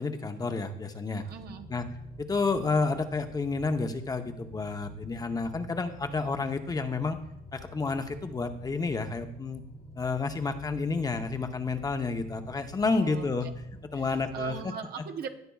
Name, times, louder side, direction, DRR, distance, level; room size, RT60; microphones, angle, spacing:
voice 1, 0.0-1.2 1.7-1.9 2.2-7.2 7.5-9.6 10.0-13.5 13.9-14.6, left 4 dB, 20° left, 6 dB, 0.8 m, -30 dB
sound 1, 1.1-14.6, left 1 dB, 40° left, 1.4 m, -49 dB
voice 2, 1.2-1.7 12.9-13.5 13.9-15.3, right 7 dB, 65° right, 5 dB, 0.9 m, -39 dB
18.5 x 6.7 x 2.3 m, 0.79 s
cardioid pair, 110°, 17 cm